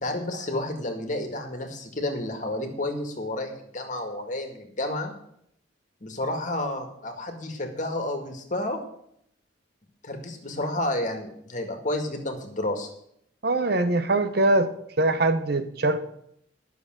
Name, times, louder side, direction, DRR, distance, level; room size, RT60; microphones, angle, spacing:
voice 1, 0.0-5.1 6.0-8.8 10.0-12.9, left 1 dB, 40° left, 5 dB, 2.0 m, -30 dB
voice 2, 13.4-14.7 15.0-16.0, right 2 dB, 55° right, 10 dB, 0.9 m, -22 dB
11.5 x 6.9 x 7.7 m, 0.73 s
head